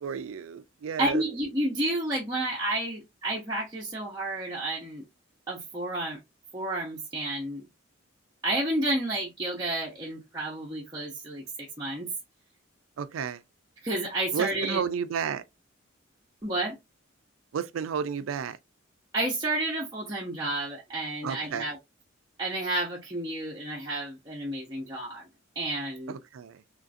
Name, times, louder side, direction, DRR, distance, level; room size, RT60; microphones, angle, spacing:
voice 1, 0.0-1.2 13.0-13.4 14.3-15.4 17.5-18.6 21.2-21.7 26.1-26.6, right 7 dB, 80° right, 0.4 m, -32 dB
voice 2, 1.0-5.0 5.5-6.2 6.5-7.6 8.4-11.4 11.8-12.1 13.8-14.8 16.4-16.8 19.1-21.8 22.4-25.2 25.6-26.2, right 1 dB, 20° right, 0.7 m, -31 dB
3.1 x 2.4 x 2.5 m
head